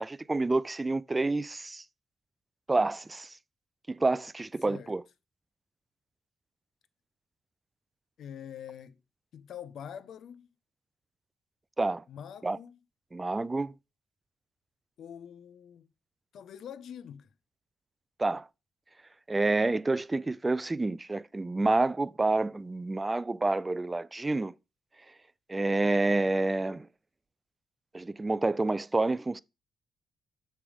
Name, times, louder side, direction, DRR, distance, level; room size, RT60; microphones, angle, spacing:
voice 1, 0.0-1.8 2.7-3.3 3.9-5.0 11.8-12.0 12.4-12.6 13.1-13.7 18.2-18.4 19.3-24.5 25.5-26.9 27.9-29.4, right 2 dB, 20° right, 0.3 m, -28 dB
voice 2, 4.6-4.9 8.2-9.0 9.3-10.5 12.1-12.8 15.0-15.9 16.3-17.3, left 9 dB, 65° left, 0.5 m, -45 dB
7.1 x 3.4 x 4.8 m
cardioid pair, 90°, 0 cm